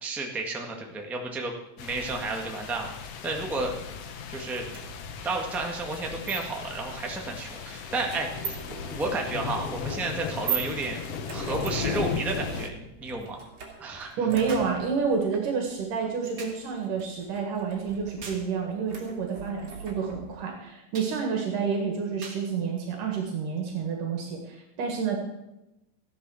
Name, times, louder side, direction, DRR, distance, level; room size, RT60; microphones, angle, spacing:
voice 1, 0.0-2.9 3.2-3.7 4.3-4.7 5.2-11.0 11.3-13.4 13.8-14.4, right 3 dB, ahead, 1 dB, 0.3 m, -32 dB
sound 1, 1.8-12.7, left 6 dB, 65° left, 1.7 m, -36 dB
sound 2, 4.7-20.5, right 6 dB, 50° right, 3.8 m, -41 dB
voice 2, 14.2-25.2, right 6 dB, 75° right, 1 dB, 3.4 m, -29 dB
sound 3, 14.5-14.8 16.4-16.7 18.2-18.5 20.9-21.2 22.2-22.5 23.6-23.7, right 3 dB, 35° right, 1.7 m, -43 dB
15.0 x 10.5 x 6.3 m, 0.94 s
omnidirectional pair, 3.8 m